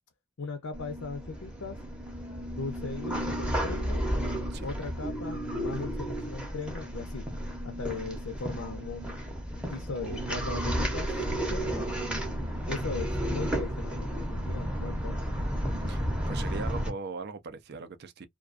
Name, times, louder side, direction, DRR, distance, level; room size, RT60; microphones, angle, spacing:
voice 1, 0.4-1.8 2.6-4.1 4.6-7.3 7.6-9.2 9.5-11.8 12.7-15.2, left 4 dB, 80° left, 0.6 m, -38 dB
sound 1, 0.7-16.9, equal, 5° right, 0.6 m, -32 dB
voice 2, 15.9-18.3, right 4 dB, 50° right, 0.4 m, -40 dB
2.3 x 2.2 x 2.4 m
head